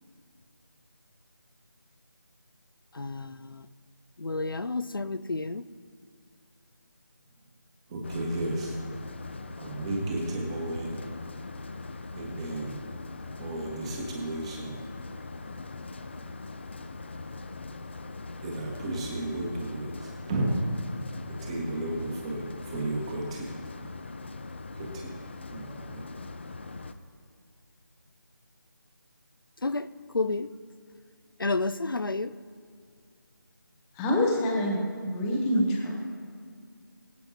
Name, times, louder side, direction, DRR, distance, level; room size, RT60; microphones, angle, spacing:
voice 1, 2.9-3.7 4.2-5.6 29.6-29.9 30.1-30.5 31.4-32.3, left 3 dB, 80° left, 14 dB, 0.6 m, -30 dB
voice 2, 7.9-8.8 9.6-11.0 12.1-12.8 13.4-14.8 18.4-20.5 21.4-23.5 24.7-25.1 25.5-26.0, right 2 dB, 15° right, 0 dB, 1.5 m, -33 dB
sound 1, 8.0-26.9, left 3 dB, 30° left, 0.5 m, -41 dB
voice 3, 34.0-35.9, left 1 dB, 5° left, 0 dB, 0.8 m, -26 dB
22.5 x 8.6 x 2.9 m, 2.2 s
figure-of-eight pair, 165°, 11 cm